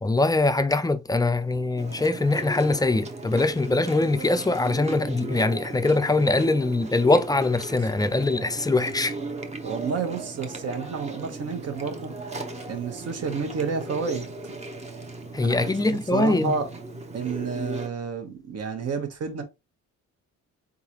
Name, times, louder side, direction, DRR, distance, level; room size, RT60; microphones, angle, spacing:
voice 1, 0.0-9.1 15.3-16.5, left 2 dB, 15° left, 0.5 m, -23 dB
Chewing mastication, 1.8-17.9, right 2 dB, 20° right, 0.8 m, -37 dB
voice 2, 9.6-12.1 12.7-14.3 15.4-16.7 17.1-19.4, right 5 dB, 55° right, 1.2 m, -30 dB
3.8 x 3.8 x 2.9 m
cardioid pair, 90°, 30 cm